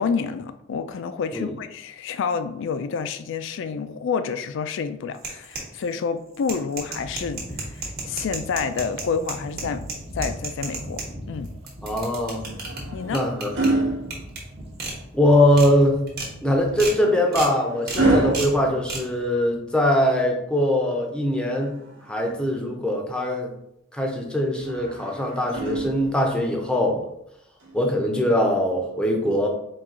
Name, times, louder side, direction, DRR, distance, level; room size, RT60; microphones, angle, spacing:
voice 1, 0.0-9.9 10.1-11.0 11.3-11.5 12.9-13.2, left 5 dB, 65° left, 11 dB, 0.3 m, -28 dB
sound 1, 5.1-5.9 6.3-11.1 11.4-12.8 13.1-13.7 14.1-14.4 14.8-14.9 15.3-15.7 16.1-16.3 16.8-17.0 17.3-17.5 17.9-18.0 18.3-18.5 18.9-19.0, right 3 dB, 50° right, 1.2 m, -32 dB
sound 2, 6.8-17.0, equal, 30° right, 0.7 m, -40 dB
voice 2, 11.8-12.5 13.1-13.8 15.1-16.0 16.4-21.7 22.1-23.5 23.9-27.0 27.7-29.5, left 1 dB, 5° left, 0 dB, 0.6 m, -22 dB
sound 3, 12.4-14.9 16.5-19.6 21.4-22.6 24.6-26.4 27.6-27.8, right 2 dB, 70° right, 1.0 m, -28 dB
4.4 x 2.3 x 3.6 m, 0.79 s
head